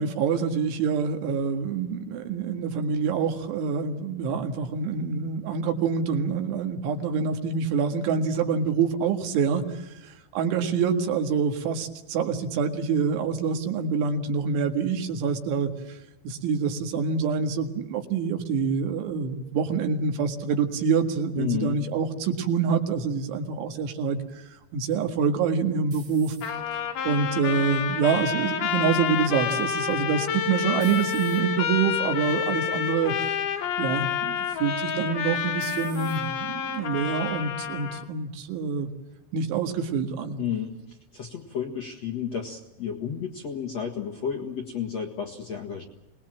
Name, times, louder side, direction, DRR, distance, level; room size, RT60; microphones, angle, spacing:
voice 1, 0.0-9.6 10.0-16.0 16.2-24.2 24.7-26.4 27.1-33.4 33.8-38.9 39.3-40.4, right 6 dB, 80° right, 5 dB, 4.2 m, -26 dB
voice 2, 21.4-21.8 40.4-45.8, left 8 dB, 55° left, 2 dB, 1.9 m, -32 dB
sound 1, 24.9-26.8 27.4-27.9 29.9-30.3 30.8-31.4 32.2-32.4 32.9-33.0 34.9-35.3 35.6-36.2, right 6 dB, 60° right, 5.0 m, -49 dB
Trumpet, 26.4-38.0, left 8 dB, 80° left, 4.7 m, -29 dB
26.0 x 20.5 x 7.6 m, 0.96 s
omnidirectional pair, 5.4 m